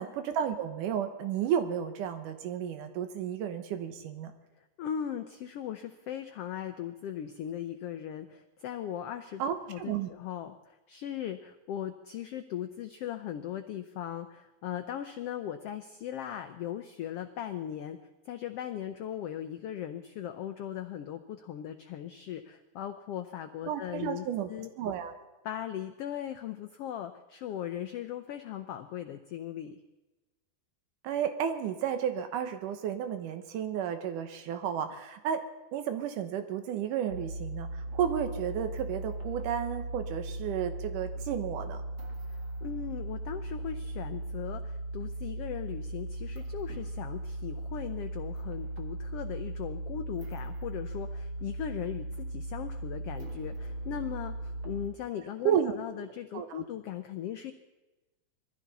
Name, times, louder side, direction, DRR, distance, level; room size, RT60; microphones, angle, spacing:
voice 1, 0.0-4.3 9.4-10.1 23.7-24.5 24.8-25.1 31.0-35.4 35.7-41.8 55.4-56.1 56.3-56.6, right 9 dB, 85° right, 7 dB, 2.6 m, -32 dB
voice 2, 4.8-9.4 9.7-18.0 18.2-24.7 25.4-29.8 42.6-57.5, left 10 dB, 75° left, 8 dB, 1.4 m, -38 dB
sound 1, 37.1-54.9, right 2 dB, 45° right, 2.3 m, -38 dB
22.0 x 15.0 x 4.1 m, 1.1 s
omnidirectional pair, 3.6 m